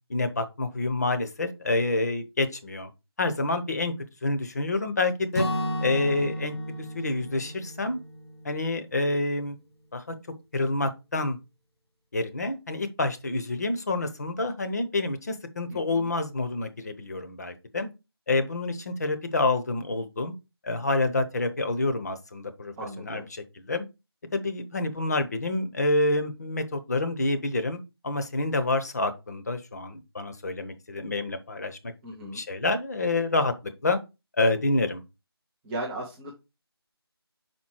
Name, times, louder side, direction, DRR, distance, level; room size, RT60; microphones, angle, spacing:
voice 1, 0.1-2.9 3.2-3.9 4.2-5.5 5.8-8.0 8.4-9.6 9.9-10.1 10.5-11.4 12.1-17.9 18.3-20.3 20.6-23.9 24.3-27.8 28.0-31.9 32.2-33.5 33.8-34.0 34.4-35.0, left 2 dB, 40° left, 0.9 m, -28 dB
Acoustic guitar / Strum, 5.3-9.3, equal, 80° left, 2.0 m, -33 dB
voice 2, 15.7-16.1 22.8-23.3 32.0-32.4 35.6-36.3, right 1 dB, 5° right, 0.5 m, -36 dB
5.7 x 4.4 x 4.5 m
figure-of-eight pair, 160°, 14 cm